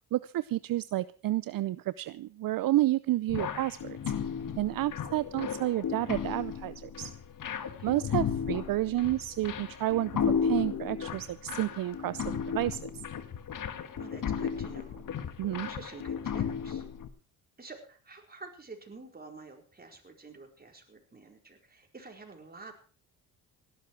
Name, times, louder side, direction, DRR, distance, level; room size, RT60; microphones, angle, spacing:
voice 1, 0.1-4.1 4.6-7.1 7.8-10.1 10.4-12.9 15.4-15.7, right 15 dB, 60° right, 17 dB, 0.6 m, -30 dB
sound 1, 3.3-17.1, left 7 dB, 55° left, 1.8 m, -34 dB
voice 2, 7.7-8.0 13.9-15.1 15.6-16.9 17.6-22.7, right 3 dB, 25° right, 3 dB, 4.6 m, -49 dB
17.5 x 12.0 x 4.7 m, 0.39 s
cardioid pair, 75°, 38 cm